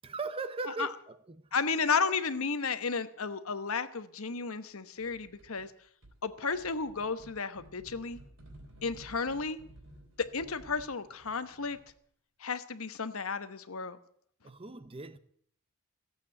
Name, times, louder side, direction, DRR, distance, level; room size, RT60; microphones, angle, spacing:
voice 1, 0.0-1.5 14.4-15.2, right 3 dB, 25° right, 0.7 m, -39 dB
voice 2, 1.5-5.7 6.2-8.2 8.8-9.6 10.2-11.8 12.4-14.0, left 5 dB, 70° left, 1.0 m, -33 dB
sound 1, 5.0-5.7 6.0-12.0, right 1 dB, 55° right, 3.5 m, -55 dB
15.5 x 8.5 x 9.7 m
head